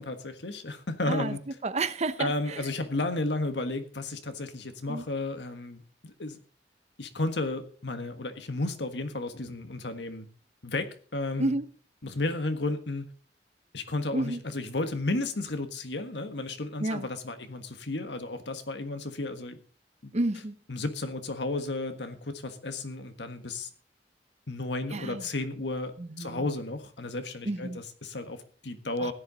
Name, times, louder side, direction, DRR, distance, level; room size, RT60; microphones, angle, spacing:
voice 1, 0.0-1.4 2.2-6.4 7.0-10.3 10.6-11.5 12.0-13.1 13.7-19.6 20.0-20.1 20.7-23.7 24.5-29.1, left 2 dB, 80° left, 1.5 m, -33 dB
voice 2, 1.6-2.6 4.9-5.0 11.4-11.7 14.1-14.4 16.8-17.1 20.1-20.6 24.9-25.3 26.0-26.5 27.5-27.8 29.0-29.1, right 2 dB, 40° right, 0.7 m, -30 dB
15.5 x 10.5 x 4.0 m
head